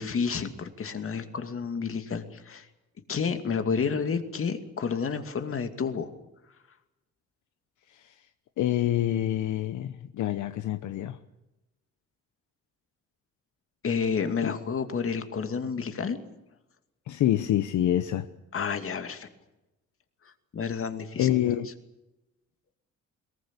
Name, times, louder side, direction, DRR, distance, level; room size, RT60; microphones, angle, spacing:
voice 1, 0.0-2.7 3.1-6.1 13.8-16.2 18.5-19.3 20.5-21.3, left 6 dB, 45° left, 2.5 m, -30 dB
voice 2, 8.6-11.2 14.4-14.6 17.1-18.3 21.2-21.7, left 12 dB, 75° left, 1.0 m, -26 dB
21.5 x 19.0 x 8.3 m
cardioid pair, 90°, 30 cm